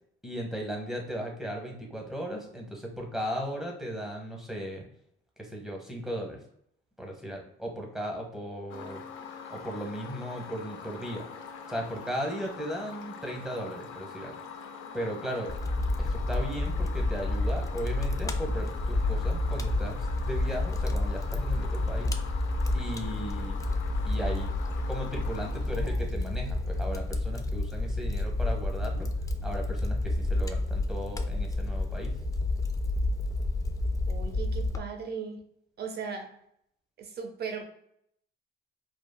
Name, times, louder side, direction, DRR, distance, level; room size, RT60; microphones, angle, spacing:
voice 1, 0.2-4.8 5.4-6.4 7.0-9.0 9.5-11.2 11.7-14.4 14.9-15.5 16.0-22.1 22.7-23.6 24.0-24.5 24.9-29.1 29.4-32.2, equal, ahead, 0 dB, 0.9 m, -36 dB
sound 1, 8.7-26.7, left 6 dB, 80° left, 0.5 m, -44 dB
Fire, 15.5-34.8, left 2 dB, 15° left, 0.3 m, -30 dB
voice 2, 34.1-35.4 35.8-36.3 37.0-37.6, right 5 dB, 55° right, 5 dB, 0.7 m, -37 dB
3.5 x 2.2 x 2.2 m, 0.71 s
cardioid pair, 90°, 20 cm